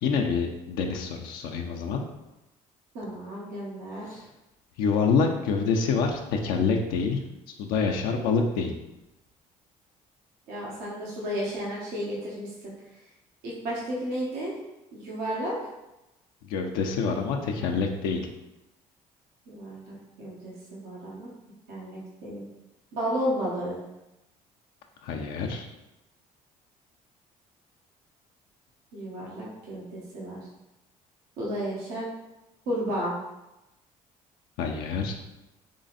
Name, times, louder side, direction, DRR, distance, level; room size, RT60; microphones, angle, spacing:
voice 1, 0.0-2.0 4.0-4.3 4.8-7.2 7.6-8.7 16.4-18.2 25.0-25.7 34.6-35.2, left 5 dB, 85° left, 2 dB, 0.5 m, -26 dB
voice 2, 2.9-4.2 10.5-12.7 13.4-14.5 14.9-15.6 19.5-21.3 21.7-22.4 22.9-23.8 28.9-30.4 31.4-32.0 32.7-33.1, equal, 85° right, -5 dB, 1.2 m, -33 dB
3.7 x 3.3 x 4.0 m, 0.96 s
supercardioid pair, 85°, 15 cm